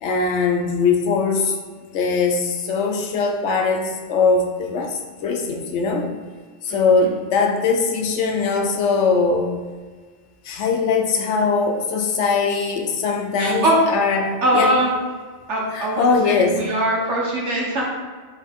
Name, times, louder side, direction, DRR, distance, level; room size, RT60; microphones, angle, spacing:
voice 1, 0.0-1.6 1.9-6.1 6.6-9.5 10.5-14.7 15.7-16.6, left 4 dB, 80° left, 3 dB, 0.9 m, -21 dB
voice 2, 6.7-7.1 13.4-13.8 14.4-14.9 15.5-17.8, right 1 dB, 75° right, -3 dB, 1.4 m, -22 dB
4.1 x 3.4 x 3.5 m, 1.5 s
omnidirectional pair, 1.2 m